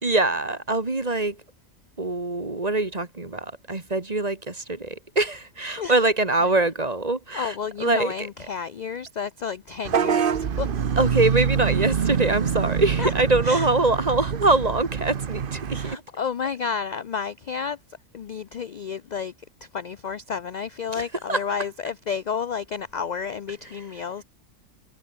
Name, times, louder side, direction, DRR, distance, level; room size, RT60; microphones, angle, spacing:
voice 1, 0.0-1.4 2.0-8.3 11.0-16.0 20.9-21.0 21.3-21.4, right 2 dB, 30° right, 2.0 m, -24 dB
voice 2, 7.3-10.7 13.0-13.1 13.4-13.7 15.7-17.8 18.1-19.3 19.6-24.2, left 6 dB, 55° left, 0.5 m, -31 dB
Vehicle horn car horn honking / Bus, 9.8-15.9, right 7 dB, 45° right, 1.0 m, -25 dB
omnidirectional pair, 1.4 m